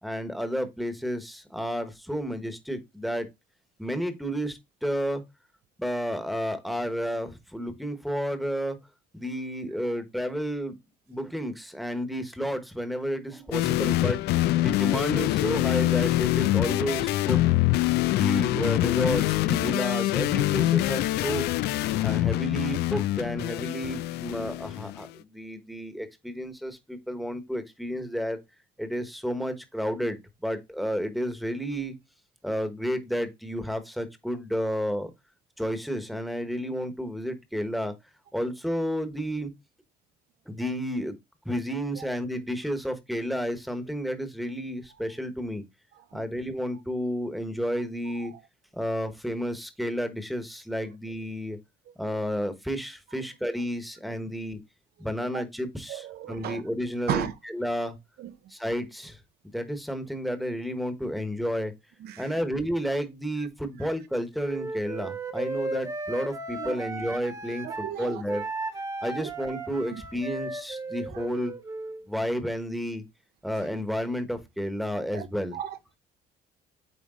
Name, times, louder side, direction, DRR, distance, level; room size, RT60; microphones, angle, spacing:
voice 1, 0.0-3.3 3.8-5.2 5.8-8.8 9.1-10.7 11.1-14.2 14.6-17.4 18.1-21.4 22.0-28.4 28.8-31.9 32.4-35.1 35.6-38.0 38.3-39.5 40.5-41.1 41.4-45.6 46.1-48.3 48.7-51.6 52.0-54.6 55.0-58.0 58.5-59.2 59.5-61.7 62.2-68.4 69.0-71.5 72.1-73.0 73.4-75.6, equal, ahead, 1.2 m, -31 dB
sound 1, 13.5-25.0, left 16 dB, 75° left, 0.4 m, -25 dB
voice 2, 55.9-56.6 57.1-57.3 58.2-58.3 62.0-62.3 66.6-66.8 67.6-68.2 69.2-69.3 69.9-70.0 71.1-71.3 75.1-75.3 75.5-76.0, right 11 dB, 70° right, 0.8 m, -35 dB
Wind instrument woodwind instrument, 64.4-67.9 68.3-72.0, right 3 dB, 20° right, 1.2 m, -35 dB
8.9 x 3.3 x 3.7 m
cardioid pair, 110°, 17 cm